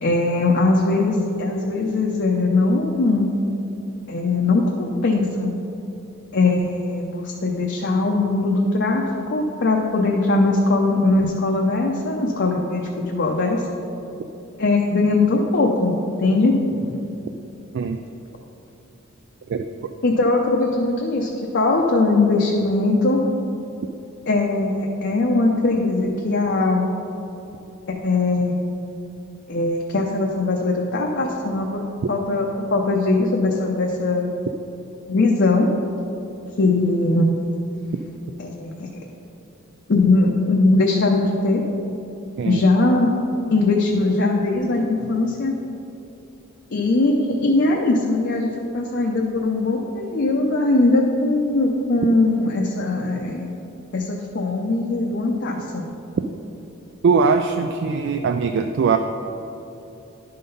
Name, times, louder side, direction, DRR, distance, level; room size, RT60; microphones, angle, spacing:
voice 1, 0.0-3.3 4.1-5.5 6.3-13.6 14.6-17.0 20.0-23.2 24.3-26.8 27.9-28.5 29.5-34.3 35.1-35.7 36.6-37.3 38.4-38.9 39.9-41.6 42.4-43.1 43.5-45.6 46.7-53.5 53.9-55.8, left 2 dB, 55° left, -1 dB, 0.6 m, -20 dB
voice 2, 57.0-59.0, right 5 dB, 55° right, 6 dB, 0.3 m, -20 dB
11.5 x 3.8 x 5.4 m, 2.8 s
head